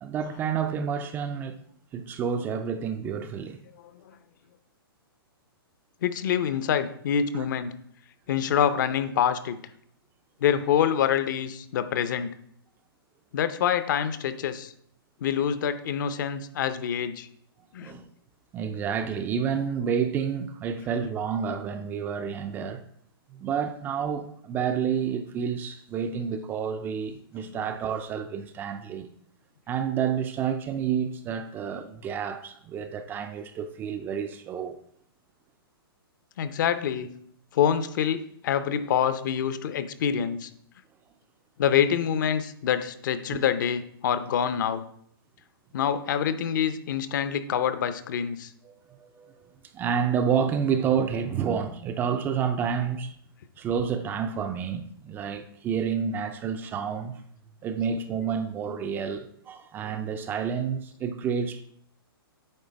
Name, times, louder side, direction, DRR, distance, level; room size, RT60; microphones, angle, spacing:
voice 1, 0.0-1.6 1.9-3.6 7.3-7.4 17.8-18.0 18.5-22.8 23.3-29.1 29.7-34.8 43.3-43.4 48.6-53.2 53.6-57.2 57.6-61.6, right 7 dB, 15° right, 0.4 m, -29 dB
voice 2, 6.0-7.7 8.3-9.6 10.4-12.3 13.3-14.7 15.2-17.3 17.7-17.9 27.5-27.7 36.4-37.1 37.5-40.5 41.6-44.8 45.7-48.5, left 8 dB, 50° left, 0.7 m, -26 dB
8.9 x 3.3 x 5.2 m
hypercardioid pair, 145°, 13 cm